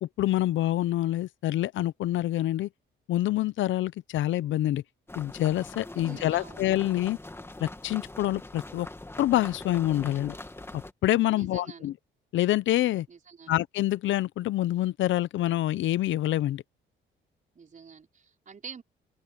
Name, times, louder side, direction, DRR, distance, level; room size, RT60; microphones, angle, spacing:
voice 1, 0.0-2.7 3.1-4.8 5.2-7.2 7.6-8.9 9.2-10.3 10.7-11.9 12.3-13.1 13.5-16.6, left 14 dB, 75° left, 0.6 m, -26 dB
sound 1, 5.1-10.9, left 2 dB, 10° left, 2.3 m, -43 dB
voice 2, 5.9-6.6 11.3-11.9 13.1-13.5 17.5-18.8, right 6 dB, 40° right, 4.9 m, -46 dB
cardioid pair, 90°, 20 cm